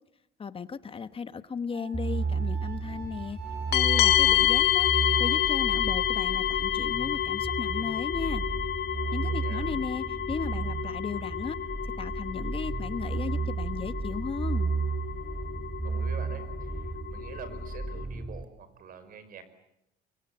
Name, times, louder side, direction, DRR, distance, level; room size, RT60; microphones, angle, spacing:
voice 1, 0.4-3.4 3.7-8.4 9.1-11.6 12.0-14.7, left 6 dB, 35° left, 12 dB, 1.3 m, -36 dB
Wind instrument woodwind instrument, 1.7-6.1, right 6 dB, 90° right, 6.2 m, -46 dB
sound 1, 1.9-18.4, right 4 dB, 10° right, 2.4 m, -33 dB
sound 2, 3.7-18.0, left 12 dB, 75° left, 1.3 m, -29 dB
voice 2, 9.2-9.7 15.8-19.4, right 7 dB, 60° right, 12 dB, 5.1 m, -46 dB
25.0 x 24.5 x 9.7 m, 0.82 s
cardioid pair, 110°, 17 cm